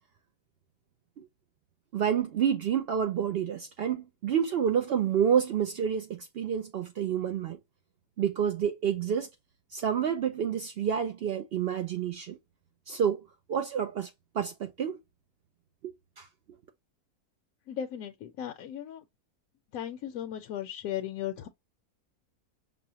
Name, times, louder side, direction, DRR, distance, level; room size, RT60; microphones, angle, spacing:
voice 1, 1.9-7.6 8.2-9.3 9.7-12.4 12.9-13.2 13.5-15.0 16.2-16.3, right 8 dB, 80° right, 0.5 m, -29 dB
voice 2, 17.7-19.0 19.7-21.5, left 10 dB, 70° left, 0.9 m, -36 dB
6.0 x 2.1 x 2.7 m
omnidirectional pair, 1.6 m